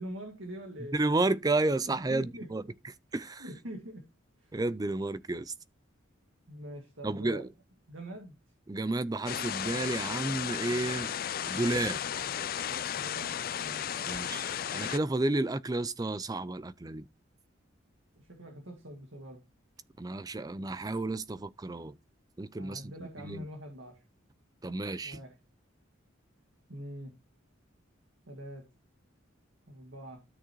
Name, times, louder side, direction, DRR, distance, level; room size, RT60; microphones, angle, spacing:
voice 1, 0.0-1.0 1.9-2.5 3.4-4.0 4.4-4.5 6.5-7.5 7.9-8.3 12.9-14.1 18.2-19.4 22.6-24.0 25.0-25.4 26.7-27.1 28.3-28.7 29.7-30.2, equal, 70° right, 2.1 m, -44 dB
voice 2, 0.9-2.6 3.1-3.4 4.5-5.5 7.0-7.5 8.7-11.1 11.5-12.0 14.1-17.1 20.0-22.0 22.4-22.9 23.2-23.5 24.6-25.2, right 2 dB, 20° right, 0.4 m, -31 dB
sound 1, 9.3-15.0, left 9 dB, 45° left, 0.4 m, -34 dB
13.0 x 6.2 x 3.0 m
head